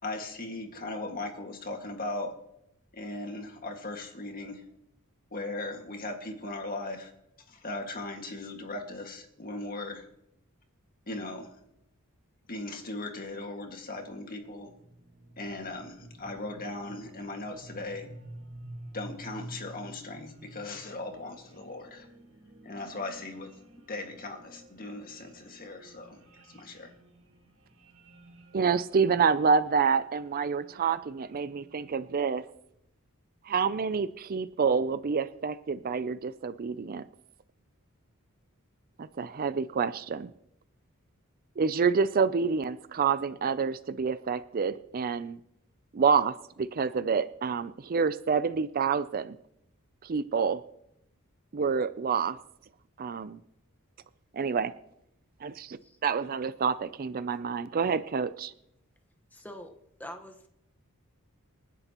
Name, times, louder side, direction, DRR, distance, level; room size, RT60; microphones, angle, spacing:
voice 1, 0.0-2.3 2.9-4.6 5.3-7.1 7.5-10.1 11.1-11.5 12.5-14.7 15.4-18.1 18.9-22.1 22.6-23.5 23.9-26.9, left 2 dB, 40° left, 3 dB, 1.9 m, -38 dB
sound 1, 13.9-32.2, right 1 dB, 80° right, 4.3 m, -51 dB
voice 2, 28.5-32.4 33.5-37.0 39.0-40.3 41.6-45.4 45.9-49.4 50.0-50.6 51.5-52.4 53.0-53.4 54.3-54.7 55.4-58.5, right 5 dB, 40° right, 14 dB, 0.4 m, -28 dB
voice 3, 59.3-59.7 60.0-60.5, equal, 10° left, 4 dB, 1.2 m, -44 dB
27.5 x 11.0 x 3.0 m, 0.81 s
head